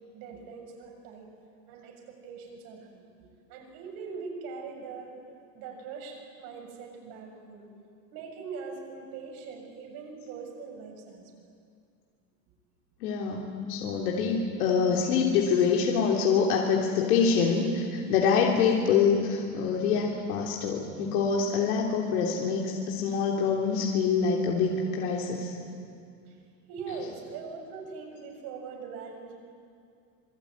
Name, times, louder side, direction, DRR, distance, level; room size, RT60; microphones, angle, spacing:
voice 1, 0.1-1.3 1.7-3.0 3.5-5.1 5.5-7.7 8.1-11.2 26.3-26.4 26.7-29.4, right 5 dB, 55° right, 1 dB, 7.0 m, -41 dB
voice 2, 13.0-25.6, left 6 dB, 85° left, -1 dB, 3.4 m, -25 dB
26.5 x 21.5 x 9.7 m, 2.3 s
supercardioid pair, 155°, 43 cm